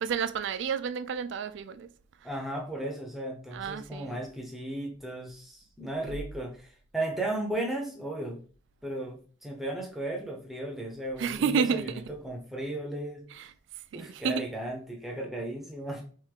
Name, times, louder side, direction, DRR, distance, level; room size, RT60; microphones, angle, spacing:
voice 1, 0.0-1.9 2.2-2.3 3.5-4.2 11.2-12.1 13.3-13.5 13.9-14.4, right 6 dB, 65° right, 0.3 m, -30 dB
voice 2, 2.2-8.4 8.8-13.2 13.9-16.0, right 1 dB, ahead, 0.6 m, -35 dB
3.5 x 3.1 x 3.3 m
head